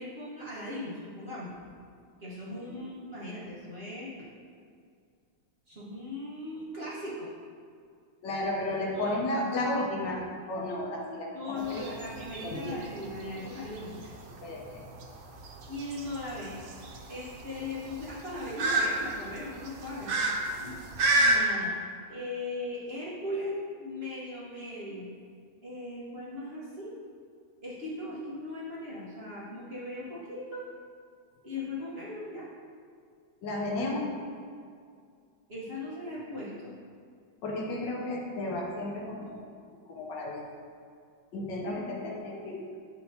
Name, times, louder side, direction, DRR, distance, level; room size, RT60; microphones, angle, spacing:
voice 1, 0.0-1.5 2.2-4.1 5.7-7.3 8.9-9.2 11.3-14.2 15.7-16.6 17.1-20.2 21.1-21.8 22.1-25.1 25.6-26.9 27.6-30.7 31.4-32.5 35.5-36.7, left 1 dB, 35° right, -9 dB, 1.2 m, -38 dB
voice 2, 8.2-12.0 12.4-12.8 14.4-14.8 20.6-20.8 33.4-34.1 37.4-39.4 39.9-40.4 41.3-42.8, left 1 dB, 70° left, -1 dB, 1.4 m, -33 dB
sound 1, 11.6-21.4, right 2 dB, 90° right, 1.5 m, -31 dB
8.6 x 4.4 x 2.8 m, 2.2 s
omnidirectional pair, 2.1 m